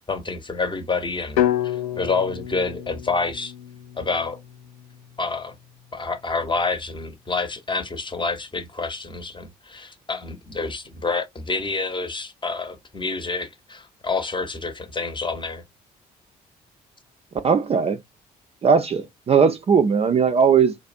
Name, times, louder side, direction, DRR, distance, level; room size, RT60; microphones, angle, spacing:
voice 1, 0.1-3.5 4.0-4.4 5.2-5.5 5.9-15.6, left 3 dB, 25° left, 0.8 m, -28 dB
sound 1, 1.4-5.4, left 11 dB, 80° left, 0.4 m, -28 dB
voice 2, 17.4-18.0 18.6-20.7, right 6 dB, 30° right, 0.4 m, -18 dB
2.4 x 2.1 x 2.5 m
hypercardioid pair, 45°, 20 cm